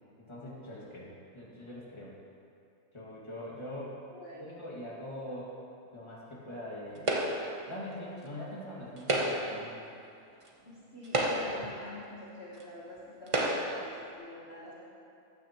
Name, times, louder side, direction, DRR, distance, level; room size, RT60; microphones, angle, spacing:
voice 1, 0.2-2.1 2.9-4.0 4.4-5.5 5.9-7.2 7.7-9.8, left 1 dB, 20° left, -6 dB, 1.9 m, -42 dB
voice 2, 4.1-4.6 10.6-14.9, left 1 dB, 45° left, -8 dB, 1.5 m, -46 dB
sound 1, 7.1-7.6 9.0-9.6 10.5-10.6 11.0-11.7 12.6-12.7 13.3-13.9, right 1 dB, 30° right, 0.7 m, -30 dB
14.0 x 9.3 x 3.0 m, 2.5 s
omnidirectional pair, 1.6 m